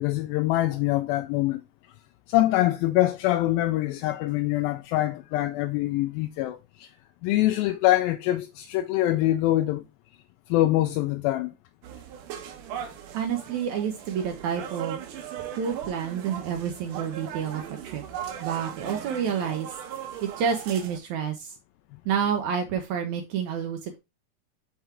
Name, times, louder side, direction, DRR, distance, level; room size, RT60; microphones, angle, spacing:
voice 1, 0.0-1.6 2.3-6.9 7.2-9.8 10.5-11.5, left 15 dB, 80° left, 2.2 m, -24 dB
sound 1, 11.8-21.0, right 9 dB, 70° right, 2.2 m, -38 dB
voice 2, 13.1-15.0 15.6-18.0 18.4-19.7 20.2-21.5 22.0-24.0, right 7 dB, 85° right, 1.6 m, -29 dB
7.0 x 3.7 x 4.2 m
omnidirectional pair, 4.5 m